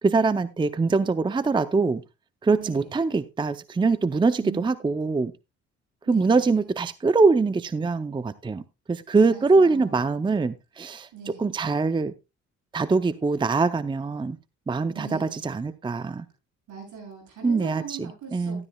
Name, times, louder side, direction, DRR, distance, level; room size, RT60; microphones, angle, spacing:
voice 1, 0.0-2.0 2.4-5.3 6.1-8.6 8.9-12.1 12.7-14.4 14.7-16.3 17.4-18.0 18.3-18.6, right 4 dB, 15° right, 0.5 m, -23 dB
voice 2, 2.6-2.9 4.4-4.7 6.1-6.7 9.3-10.4 11.1-11.5 14.9-15.5 16.7-18.7, right 6 dB, 75° right, 7.7 m, -41 dB
13.0 x 12.0 x 2.2 m
cardioid pair, 90°, 30 cm